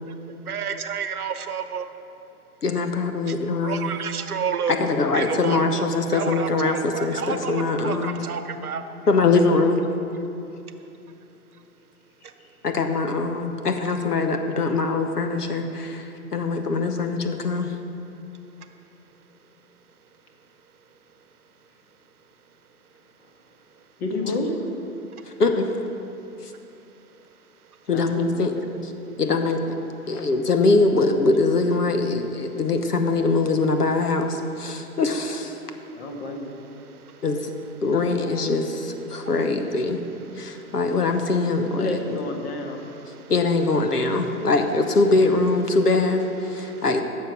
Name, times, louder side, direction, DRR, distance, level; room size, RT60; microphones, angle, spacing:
voice 1, 0.5-1.9 3.3-3.4 3.6-4.7 5.1-8.8 34.4-34.5 36.2-36.3 37.2-37.3 38.3-38.5 42.9-43.0 43.9-44.0 44.3-44.5 46.4-46.9, right 7 dB, 70° right, 9 dB, 0.9 m, -31 dB
voice 2, 2.6-3.9 4.7-8.2 9.1-9.8 12.6-17.7 25.4-25.8 26.4-26.5 27.9-28.5 29.2-29.6 30.1-35.6 37.2-37.5 37.8-40.0 40.4-42.0 43.3-47.0, left 3 dB, 80° left, 6 dB, 1.1 m, -22 dB
voice 3, 24.0-24.7 27.9-28.1 28.5-28.6 30.1-30.3 35.9-36.5 41.8-42.9, left 2 dB, 40° left, 3 dB, 1.6 m, -30 dB
14.5 x 6.7 x 5.5 m, 2.8 s
figure-of-eight pair, 115°, 46 cm